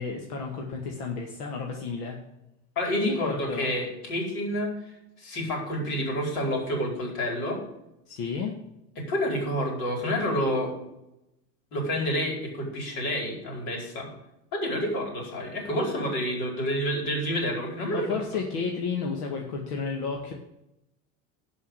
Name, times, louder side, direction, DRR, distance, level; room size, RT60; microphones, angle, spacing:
voice 1, 0.0-2.2 3.0-3.7 8.1-8.5 17.9-20.3, left 5 dB, 80° left, 1 dB, 2.1 m, -32 dB
voice 2, 2.7-4.7 5.2-7.6 9.0-10.8 11.7-14.1 14.5-18.2, equal, 55° left, 1 dB, 4.9 m, -29 dB
11.5 x 5.6 x 8.0 m, 0.87 s
supercardioid pair, 165°, 46 cm